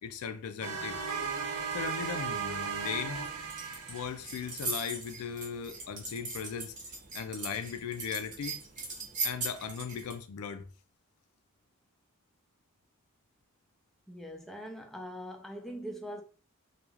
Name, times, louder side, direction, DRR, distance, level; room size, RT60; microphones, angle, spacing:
voice 1, 0.0-1.0 1.7-3.2 3.9-6.7 7.1-8.6 9.2-10.7, left 7 dB, 90° left, 0.4 m, -38 dB
sound 1, 0.6-4.5, right 5 dB, 90° right, 0.5 m, -36 dB
sound 2, 2.8-10.2, right 3 dB, 35° right, 0.6 m, -40 dB
voice 2, 14.1-16.2, equal, ahead, 0.3 m, -42 dB
2.4 x 2.2 x 3.0 m
head